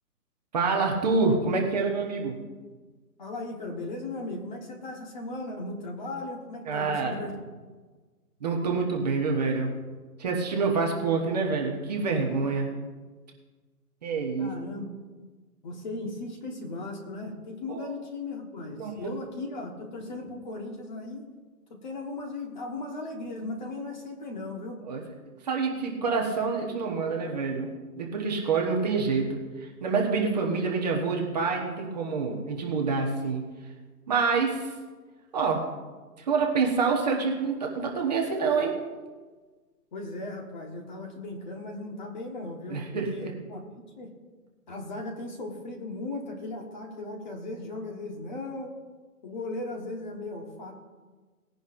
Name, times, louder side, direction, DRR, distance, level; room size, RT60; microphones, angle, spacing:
voice 1, 0.5-2.4 6.7-7.2 8.4-9.8 10.2-12.8 14.0-14.5 17.7-17.9 18.8-19.1 24.9-25.0 25.4-33.5 34.1-34.7 35.3-35.7 36.2-38.8 42.7-43.3, right 4 dB, 25° right, 0 dB, 1.1 m, -27 dB
voice 2, 3.2-7.3 14.4-14.9 15.6-21.3 21.7-24.8 39.9-42.8 43.1-44.1 44.7-48.7 49.2-50.7, left 2 dB, 30° left, 2 dB, 1.4 m, -37 dB
19.0 x 10.5 x 2.6 m, 1.4 s
hypercardioid pair, 170°, 48 cm